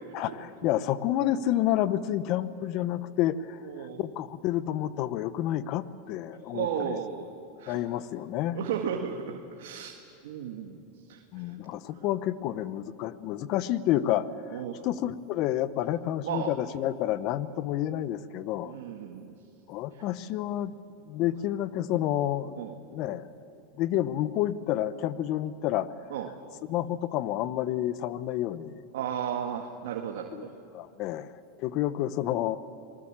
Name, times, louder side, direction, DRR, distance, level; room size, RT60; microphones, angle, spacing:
voice 1, 0.1-7.0 7.7-8.6 11.3-18.7 19.7-20.7 21.1-23.3 23.8-25.9 26.7-28.8 30.3-30.4 30.7-31.3 31.6-32.6, left 12 dB, 50° left, 14 dB, 1.0 m, -29 dB
voice 2, 3.6-4.1 6.5-7.3 7.6-7.8 8.5-10.0 10.2-11.5 14.5-14.8 16.3-16.5 18.7-19.3 22.6-22.8 26.1-26.3 28.9-30.5, right 8 dB, 80° right, 2 dB, 1.8 m, -34 dB
26.0 x 19.5 x 7.5 m, 2.7 s
supercardioid pair, 120°, 0 cm